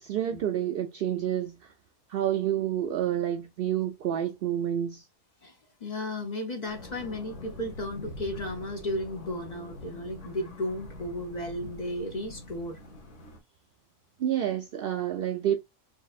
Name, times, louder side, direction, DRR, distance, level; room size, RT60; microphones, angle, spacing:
voice 1, 0.0-1.7 2.1-5.1 14.2-15.6, right 11 dB, 70° right, 0.5 m, -29 dB
voice 2, 5.8-12.8, left 1 dB, 40° left, 0.6 m, -34 dB
sound 1, 6.7-13.4, left 2 dB, 60° left, 1.5 m, -44 dB
4.6 x 3.3 x 2.4 m
omnidirectional pair, 1.5 m